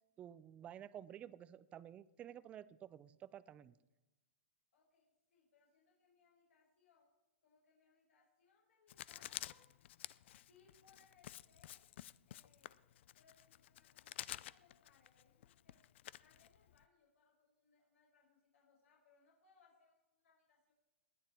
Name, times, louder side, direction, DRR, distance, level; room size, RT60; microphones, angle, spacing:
voice 1, 0.2-3.7, right 10 dB, 15° right, 17 dB, 0.4 m, -52 dB
voice 2, 4.7-7.1 7.4-9.6 10.3-11.9 12.3-12.8 13.2-15.8 16.2-20.7, left 5 dB, 75° left, -2 dB, 5.1 m, -72 dB
Writing, 8.9-16.8, left 13 dB, 55° left, 0.5 m, -51 dB
19.5 x 11.0 x 4.4 m, 1.1 s
hypercardioid pair, 150°, 7 cm